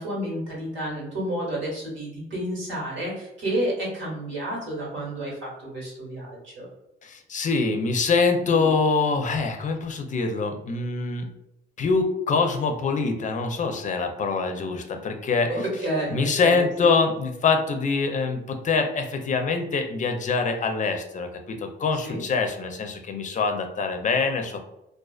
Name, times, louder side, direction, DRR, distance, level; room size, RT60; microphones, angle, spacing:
voice 1, 0.0-6.7 8.4-8.7 15.8-16.9 22.0-22.2, right 1 dB, 80° right, -4 dB, 1.3 m, -30 dB
voice 2, 7.0-11.3 11.8-15.6 16.1-24.6, left 4 dB, 40° left, 5 dB, 0.4 m, -24 dB
2.3 x 2.3 x 2.3 m, 0.85 s
cardioid pair, 90°, 20 cm